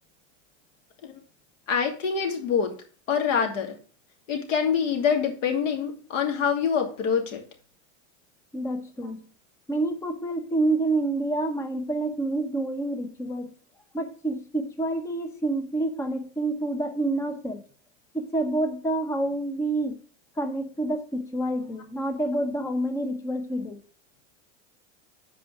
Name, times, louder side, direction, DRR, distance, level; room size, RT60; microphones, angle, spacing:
voice 1, 1.7-2.7 3.1-3.8 4.3-7.4, left 6 dB, 90° left, 2.7 m, -25 dB
voice 2, 8.5-9.2 9.7-13.5 13.9-17.6 18.1-20.0 20.4-23.8, right 2 dB, 10° left, 0.7 m, -28 dB
8.2 x 4.9 x 7.1 m
supercardioid pair, 150°, 37 cm